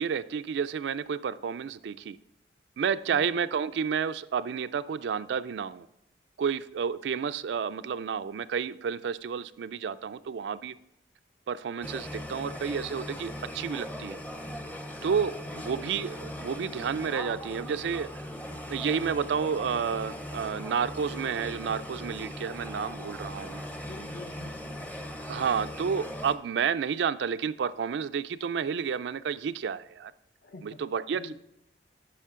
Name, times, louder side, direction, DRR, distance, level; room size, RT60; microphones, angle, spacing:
voice 1, 0.0-2.2 2.8-5.9 6.4-10.8 11.5-14.2 15.0-18.1 18.7-23.7 25.3-30.1 30.6-31.3, right 6 dB, 85° right, 0.3 m, -30 dB
sound 1, 11.8-26.4, equal, 10° left, 0.5 m, -39 dB
voice 2, 23.7-24.8 30.4-30.8 31.1-31.3, left 2 dB, 60° left, 0.6 m, -46 dB
10.0 x 5.7 x 3.7 m
head